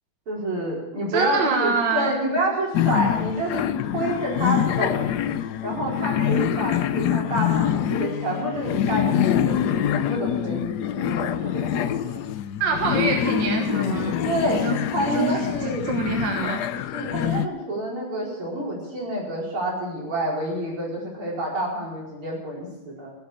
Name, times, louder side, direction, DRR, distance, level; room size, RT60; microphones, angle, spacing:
voice 1, 0.3-5.0 5.6-12.2 14.2-15.9 16.9-23.1, right 1 dB, 85° right, -4 dB, 5.7 m, -28 dB
voice 2, 1.1-2.1 12.6-14.2 14.5-14.8 15.1-16.6, right 4 dB, 60° right, 2 dB, 2.0 m, -25 dB
sound 1, 2.7-17.5, left 10 dB, 70° left, 1.0 m, -25 dB
16.0 x 8.2 x 8.5 m, 0.98 s
omnidirectional pair, 2.3 m